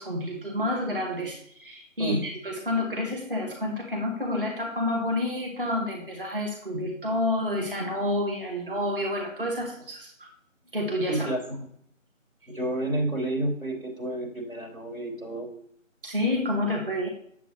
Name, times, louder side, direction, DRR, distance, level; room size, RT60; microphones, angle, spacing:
voice 1, 0.0-10.3 10.7-11.3 16.0-17.1, left 1 dB, 40° right, 0 dB, 1.2 m, -29 dB
voice 2, 11.1-11.6 12.5-15.5, right 1 dB, 85° right, 2 dB, 3.1 m, -30 dB
7.9 x 7.4 x 3.0 m, 0.65 s
figure-of-eight pair, 170°, 40 cm